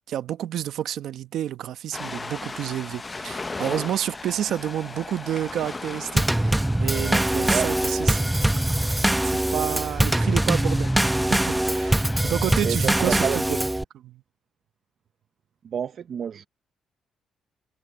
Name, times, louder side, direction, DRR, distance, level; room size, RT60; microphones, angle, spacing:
voice 1, 0.1-8.3 9.2-11.0 11.3-13.2 14.0-14.2, right 11 dB, 75° right, 1.0 m, -30 dB
Ocean, 1.9-12.2, left 3 dB, 25° left, 0.7 m, -37 dB
Drum kit / Snare drum / Bass drum, 6.2-13.8, right 1 dB, 10° right, 0.9 m, -23 dB
voice 2, 12.6-13.6 15.6-16.5, right 8 dB, 55° right, 0.6 m, -29 dB
cardioid pair, 90°, 0 cm